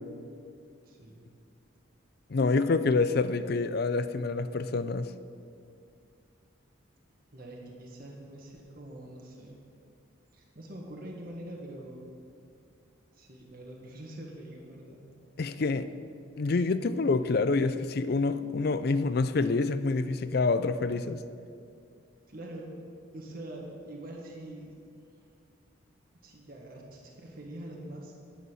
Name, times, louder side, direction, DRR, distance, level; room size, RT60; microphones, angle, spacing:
voice 1, 0.9-1.2 7.3-9.5 10.3-12.1 13.1-15.0 22.3-22.7 23.1-24.8 26.2-28.1, right 1 dB, 45° right, -2 dB, 1.6 m, -44 dB
voice 2, 2.3-5.1 15.4-15.9 16.4-21.2, left 3 dB, 50° left, 12 dB, 0.4 m, -27 dB
11.0 x 8.1 x 6.3 m, 2.4 s
head